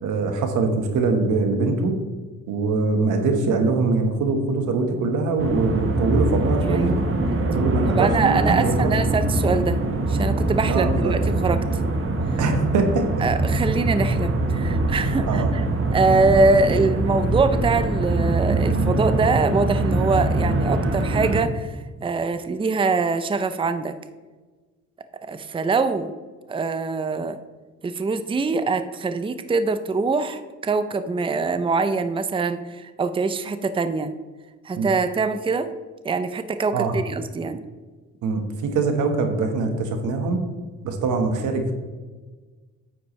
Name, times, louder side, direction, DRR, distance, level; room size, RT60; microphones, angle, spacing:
voice 1, 0.0-1.9 2.5-6.9 7.4-8.9 10.7-11.2 12.4-13.3 15.3-15.5 34.8-34.9 36.7-37.0 38.2-40.4 40.8-41.7, right 3 dB, 80° right, 5 dB, 1.4 m, -23 dB
sound 1, 5.4-21.4, right 2 dB, 45° right, 1.4 m, -23 dB
voice 2, 6.6-7.5 7.9-9.8 10.1-11.6 13.2-15.6 15.9-23.9 25.3-26.1 26.5-27.4 27.8-34.1 34.6-35.7 36.0-37.6, right 4 dB, 15° right, 11 dB, 0.5 m, -23 dB
9.5 x 7.9 x 3.2 m, 1.3 s
cardioid pair, 90°, 30 cm